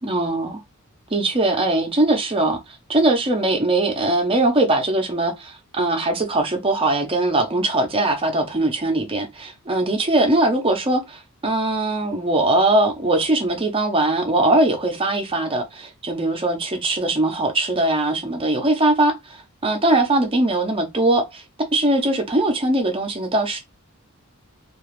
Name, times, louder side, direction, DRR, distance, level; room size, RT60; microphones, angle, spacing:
voice 1, 0.0-0.6 1.1-2.6 2.9-21.4 21.7-23.6, right 2 dB, 25° right, 0.6 m, -21 dB
2.4 x 2.3 x 3.1 m
head